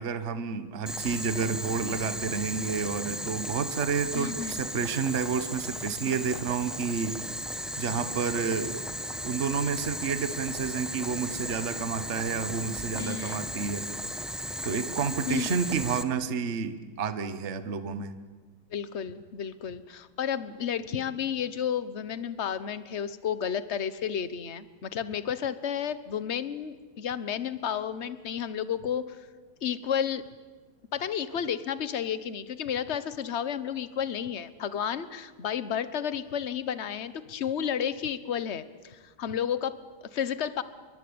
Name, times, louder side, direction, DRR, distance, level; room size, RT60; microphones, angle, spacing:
voice 1, 0.0-7.2 7.8-8.8 9.2-13.9 14.6-18.1, right 6 dB, 40° right, 10 dB, 1.4 m, -30 dB
Boiling, 0.9-16.0, equal, ahead, 0.6 m, -36 dB
voice 2, 4.1-4.6 12.9-13.4 15.3-15.5 18.7-29.2 29.6-30.2 30.9-40.6, left 8 dB, 40° left, 14 dB, 1.2 m, -32 dB
29.5 x 23.0 x 8.7 m, 1.4 s
omnidirectional pair, 2.2 m